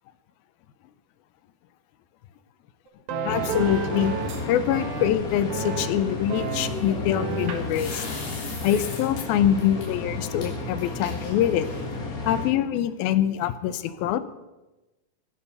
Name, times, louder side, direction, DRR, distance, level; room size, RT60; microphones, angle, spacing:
sound 1, 2.9-4.4 4.7-5.1 5.5-5.9 6.3-6.7 7.1-7.6, right 6 dB, 60° right, 2.5 m, -31 dB
voice 1, 3.2-4.1 4.5-8.0 8.6-11.7 12.3-14.2, left 10 dB, 85° left, 13 dB, 2.6 m, -24 dB
sound 2, 3.3-12.5, left 3 dB, 35° left, 1.4 m, -33 dB
sound 3, 3.6-4.4 6.4-9.2 9.6-9.9 10.4-10.5 10.8-12.0, left 3 dB, 70° left, 5.1 m, -39 dB
18.5 x 11.5 x 5.5 m, 1.1 s
omnidirectional pair, 4.2 m